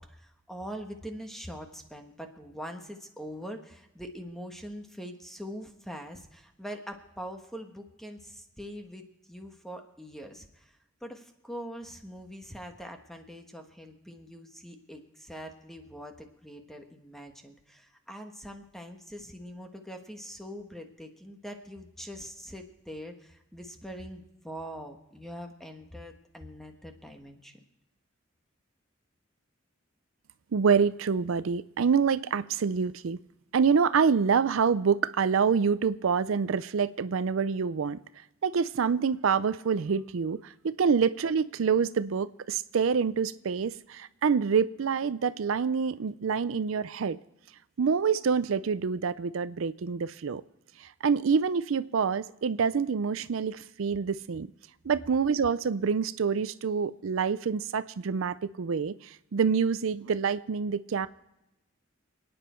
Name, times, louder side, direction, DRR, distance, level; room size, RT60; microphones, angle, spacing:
voice 1, 0.0-27.6, equal, ahead, 4 dB, 1.4 m, -43 dB
voice 2, 30.5-33.2 33.5-38.0 38.4-47.2 47.8-50.4 50.8-54.5 54.8-61.1, right 6 dB, 85° right, 15 dB, 0.5 m, -26 dB
28.0 x 9.5 x 4.4 m, 0.95 s
head